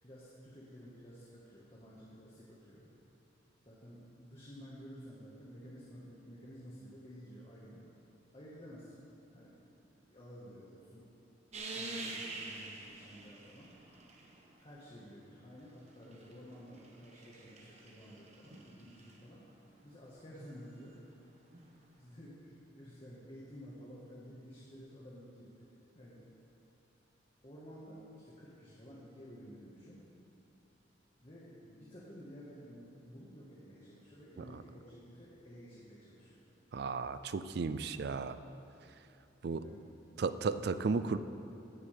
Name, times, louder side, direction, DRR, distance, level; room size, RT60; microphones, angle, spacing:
voice 1, 0.0-2.9 3.6-7.8 8.3-9.0 9.3-9.6 10.1-11.0 11.6-13.7 14.6-19.4 19.8-21.2 22.0-25.5 25.9-26.2 27.4-30.0 31.2-36.4 39.5-39.9 40.2-40.3, equal, 30° left, -7 dB, 1.5 m, -52 dB
sound 1, 11.5-14.6 15.7-19.2 21.5-21.6, right 3 dB, 35° right, 1.0 m, -46 dB
voice 2, 36.7-38.3 39.4-39.6 40.2-41.2, right 4 dB, 55° right, 12 dB, 0.4 m, -34 dB
16.0 x 9.5 x 3.4 m, 2.9 s
head